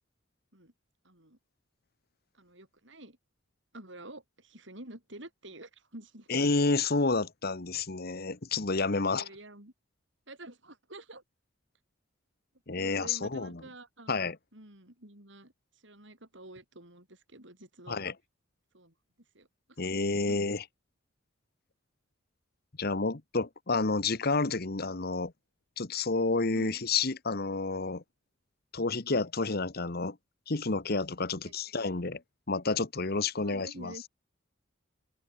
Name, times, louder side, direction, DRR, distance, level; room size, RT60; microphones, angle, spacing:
voice 1, 1.0-1.4 2.3-3.2 3.7-6.3 9.1-9.7 10.3-11.2 12.8-14.2 14.5-18.0 18.7-18.9 19.3-20.4 26.5-26.8 31.4-31.5 33.3-34.1, right 1 dB, 60° right, 6.6 m, -49 dB
voice 2, 6.3-9.2 12.7-13.5 14.1-14.4 17.9-18.1 19.8-20.6 22.8-25.3 25.8-28.0 28.7-30.2 30.5-32.2 32.5-33.9, left 3 dB, 50° left, 1.2 m, -30 dB
open air
head